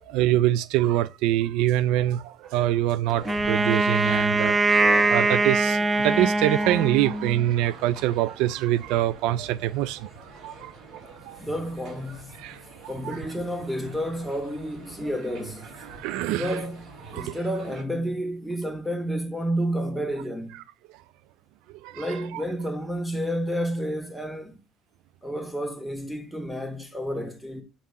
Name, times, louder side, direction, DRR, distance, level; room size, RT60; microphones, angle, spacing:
voice 1, 0.1-4.6 5.1-10.1 10.4-11.4 12.4-13.2 16.0-16.6 17.1-17.4 21.8-22.4, right 14 dB, 80° right, 0.4 m, -25 dB
sound 1, 3.0-17.8, right 3 dB, 55° right, 4.9 m, -45 dB
Wind instrument woodwind instrument, 3.2-7.5, right 2 dB, 15° right, 0.8 m, -22 dB
voice 2, 11.4-12.3 12.9-15.7 16.3-20.6 21.9-24.6 25.2-27.6, equal, ahead, 2.0 m, -30 dB
8.5 x 3.8 x 5.4 m
supercardioid pair, 95°, 0 cm